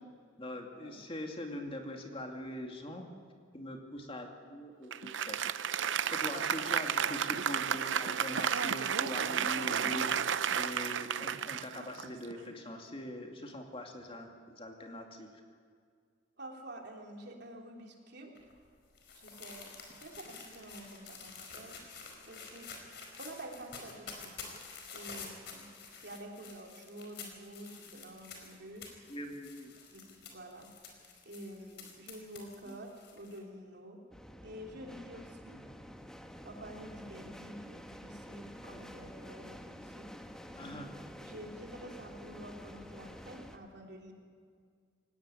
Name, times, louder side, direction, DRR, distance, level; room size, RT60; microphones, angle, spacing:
voice 1, 0.4-3.1 3.5-5.4 6.1-10.1 10.5-15.3 29.1-29.7 32.6-32.8 35.5-35.6 40.5-40.9, left 1 dB, 30° left, 2 dB, 2.4 m, -42 dB
Applause, 4.9-12.5, right 8 dB, 75° right, 0.6 m, -32 dB
voice 2, 16.4-18.3 19.1-21.8 22.2-22.7 23.2-24.4 24.9-25.7 26.0-28.9 29.9-30.7 31.3-34.0 34.4-35.6 36.4-40.1 40.5-41.0 41.2-44.1, right 1 dB, 60° right, 1 dB, 3.5 m, -48 dB
sound 1, 18.3-33.4, left 5 dB, 60° left, 4.6 m, -49 dB
sound 2, 34.1-43.6, equal, 5° left, 1.2 m, -49 dB
23.0 x 18.0 x 9.8 m, 2.1 s
head